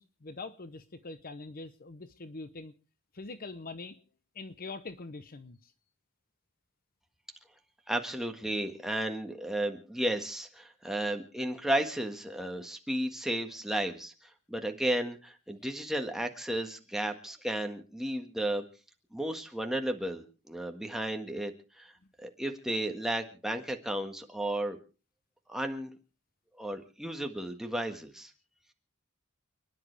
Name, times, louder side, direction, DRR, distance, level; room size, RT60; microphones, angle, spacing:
voice 1, 0.0-2.7 3.1-4.0 4.3-5.7, left 3 dB, 45° left, 11 dB, 0.8 m, -43 dB
voice 2, 7.9-18.6 19.1-21.5 21.8-21.9 22.2-24.8 25.5-25.9 26.6-28.3, right 1 dB, ahead, 4 dB, 1.6 m, -33 dB
29.5 x 10.5 x 3.4 m, 0.35 s
head